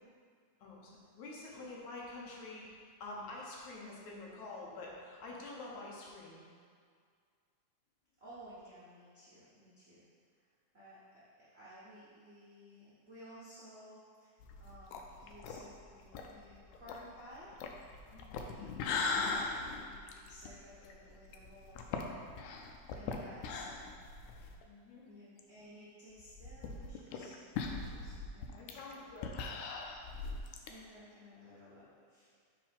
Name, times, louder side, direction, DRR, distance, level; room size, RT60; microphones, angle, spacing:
voice 1, 0.6-2.7 3.0-6.4 18.1-18.3 24.6-25.1 27.9-28.1 28.6-29.4, left 2 dB, 75° left, -3 dB, 2.4 m, -47 dB
voice 2, 8.2-10.0 10.7-17.8 18.4-23.9 25.0-29.1 30.6-32.3, equal, 50° right, -10 dB, 0.7 m, -56 dB
sound 1, 14.4-24.6 25.0-25.1 25.4-25.5 26.2-30.7, left 4 dB, 90° left, 2.1 m, -40 dB
6.1 x 4.0 x 5.2 m, 2.1 s
omnidirectional pair, 3.5 m